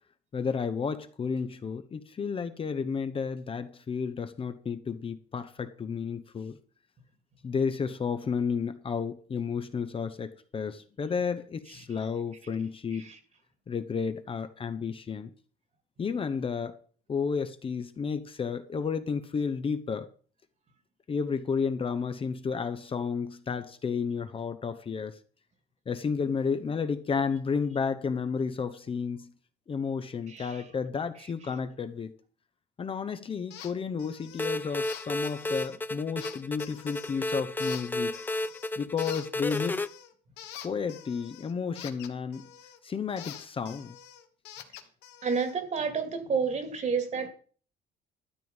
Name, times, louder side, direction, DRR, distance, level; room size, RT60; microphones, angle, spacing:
voice 1, 0.3-6.6 7.4-13.1 13.7-15.3 16.0-16.8 17.1-20.1 21.1-25.2 25.9-29.3 29.7-32.1 32.8-38.1 38.8-39.9 40.6-42.5 42.8-44.0, left 5 dB, 30° left, 1.0 m, -32 dB
voice 2, 30.3-30.6 45.2-47.3, right 5 dB, 45° right, 2.4 m, -30 dB
sound 1, 33.5-33.7 34.0-34.5 34.8-35.8 36.2-37.2 37.6-38.7 39.0-42.8 43.2-45.5, left 11 dB, 90° left, 1.4 m, -46 dB
sound 2, 34.4-39.9, left 2 dB, 10° left, 0.5 m, -32 dB
12.5 x 7.8 x 5.3 m
cardioid pair, 110°, 17 cm